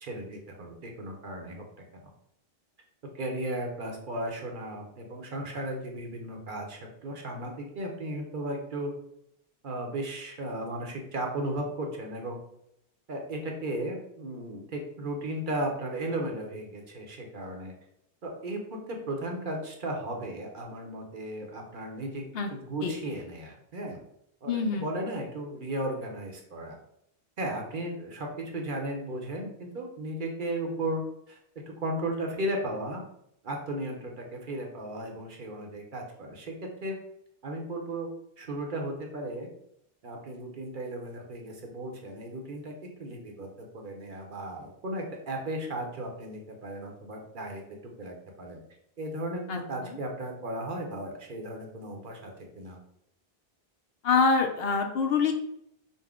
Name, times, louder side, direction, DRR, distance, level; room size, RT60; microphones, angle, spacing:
voice 1, 0.0-1.6 3.1-8.9 9.6-12.4 13.1-17.7 18.2-22.2 22.5-24.0 24.4-24.5 24.8-26.8 27.4-28.3 28.5-31.4 31.7-33.0 33.4-36.5 36.8-37.0 37.4-38.1 38.4-39.5 40.0-42.7 43.0-48.6 49.0-52.3 52.6-52.8, right 1 dB, 55° right, 1 dB, 0.9 m, -35 dB
voice 2, 24.5-24.9 49.5-50.0 54.0-55.3, left 5 dB, 75° left, 4 dB, 0.9 m, -26 dB
5.4 x 2.1 x 3.6 m, 0.75 s
omnidirectional pair, 1.0 m